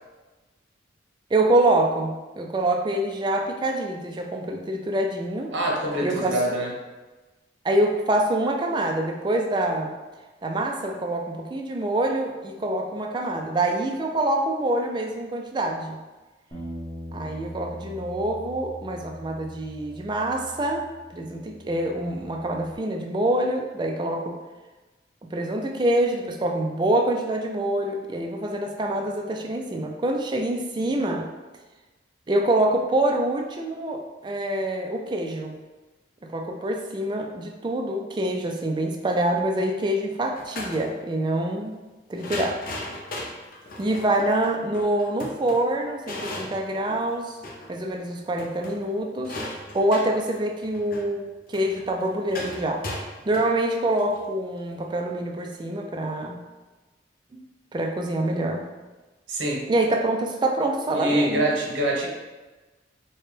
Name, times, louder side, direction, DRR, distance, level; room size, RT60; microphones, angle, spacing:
voice 1, 1.3-5.5 6.0-6.4 7.6-9.9 10.4-16.0 17.1-20.9 21.1-24.4 25.2-31.3 32.3-35.6 36.3-41.7 42.1-42.6 43.8-47.3 47.7-49.4 49.7-56.4 57.3-57.4 57.7-58.6 59.7-61.5, right 1 dB, 25° right, 2 dB, 0.3 m, -25 dB
voice 2, 5.5-6.7 59.3-59.6 60.9-62.1, right 1 dB, 85° right, -2 dB, 0.9 m, -25 dB
Bass guitar, 16.5-22.8, left 1 dB, 20° left, 0.9 m, -42 dB
sound 1, 40.4-40.8 42.1-47.8 48.1-48.2 48.3-54.8, left 1 dB, 45° left, 0.5 m, -37 dB
4.1 x 2.2 x 3.3 m, 1.2 s
head